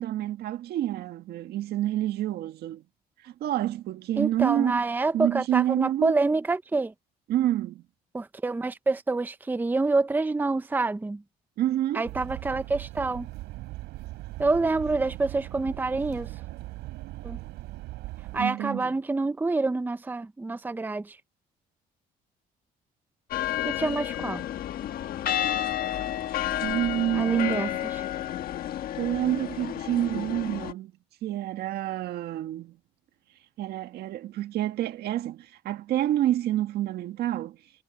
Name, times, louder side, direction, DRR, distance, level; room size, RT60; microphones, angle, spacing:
voice 1, 0.0-2.8 3.2-4.8 5.1-6.2 7.3-7.8 11.6-12.0 18.4-18.9 26.6-27.7 29.0-30.9 31.2-32.8 33.6-37.6, right 13 dB, 70° right, 1.7 m, -28 dB
voice 2, 4.2-6.9 8.1-11.2 11.9-13.3 14.4-16.3 17.2-17.4 18.3-21.2 23.6-24.4 27.1-27.7, right 3 dB, 10° right, 0.6 m, -27 dB
sound 1, 12.0-18.4, right 18 dB, 90° right, 4.0 m, -39 dB
sound 2, 23.3-30.7, left 11 dB, 60° left, 1.3 m, -31 dB
cardioid pair, 110°, 17 cm